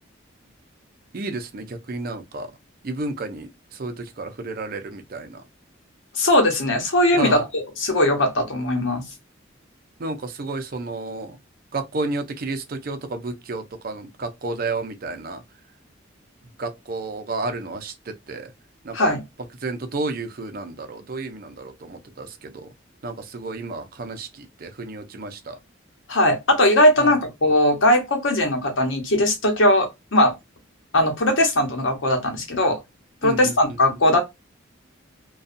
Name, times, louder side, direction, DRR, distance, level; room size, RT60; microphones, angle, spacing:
voice 1, 1.1-2.5 2.8-3.5 3.8-5.4 7.2-7.4 10.0-11.4 11.7-15.4 16.6-18.5 18.8-19.1 19.6-22.7 23.0-25.6 27.0-27.1 33.2-33.5, right 3 dB, 50° right, 0.5 m, -31 dB
voice 2, 6.1-9.0 18.9-19.2 26.1-30.3 30.9-32.8 33.2-34.2, left 1 dB, 75° left, 1.0 m, -19 dB
2.5 x 2.3 x 2.5 m
head